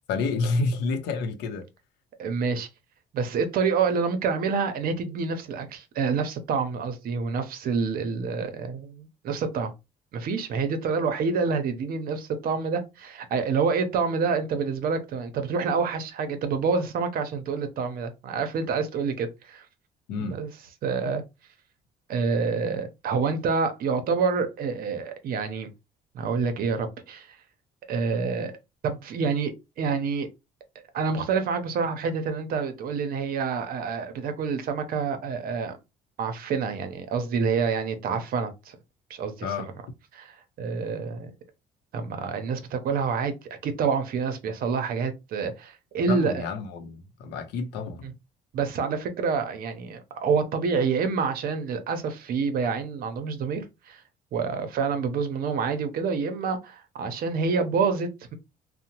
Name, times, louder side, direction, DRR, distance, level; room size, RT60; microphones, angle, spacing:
voice 1, 0.1-1.7 20.1-20.4 39.4-39.7 46.1-48.0, left 4 dB, 90° left, 0.6 m, -29 dB
voice 2, 2.2-2.7 3.1-9.7 10.1-19.7 20.2-20.5 20.8-21.2 22.1-25.7 26.1-27.4 27.9-28.5 28.8-30.3 30.9-35.8 36.2-38.8 39.1-39.7 40.1-41.3 41.9-43.3 43.6-46.4 48.0-48.1 48.5-54.0 54.3-58.3, right 5 dB, 60° right, 0.6 m, -27 dB
2.8 x 2.0 x 2.8 m
cardioid pair, 110°, 17 cm